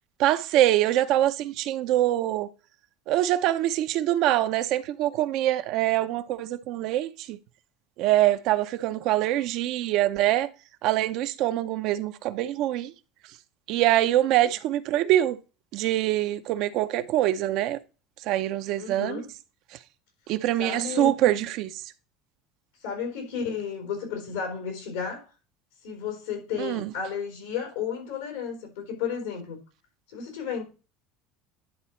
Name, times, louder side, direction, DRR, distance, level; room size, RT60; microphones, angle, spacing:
voice 1, 0.2-2.5 3.1-7.4 8.0-10.5 10.8-12.9 13.7-15.4 15.7-17.8 18.2-19.2 20.3-21.7 26.6-26.9, right 13 dB, 60° right, 0.7 m, -24 dB
voice 2, 18.8-19.3 20.6-21.1 22.8-25.3 25.8-29.6 30.1-30.6, left 6 dB, 85° left, 3.8 m, -33 dB
10.5 x 4.0 x 4.4 m
supercardioid pair, 105°, 0 cm